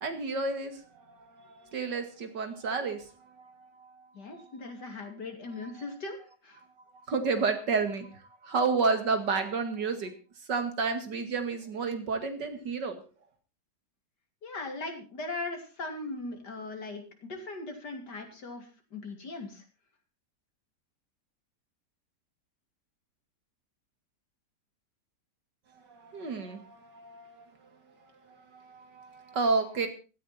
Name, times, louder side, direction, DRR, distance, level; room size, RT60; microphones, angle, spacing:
voice 1, 0.0-4.5 4.8-4.9 5.8-5.9 7.1-10.1 10.5-13.0 25.9-27.5 28.0-29.9, right 4 dB, 75° right, 7 dB, 2.7 m, -31 dB
voice 2, 4.1-6.6 14.4-19.7, left 2 dB, 70° left, 4 dB, 3.5 m, -39 dB
16.0 x 13.5 x 4.3 m, 0.34 s
omnidirectional pair, 1.9 m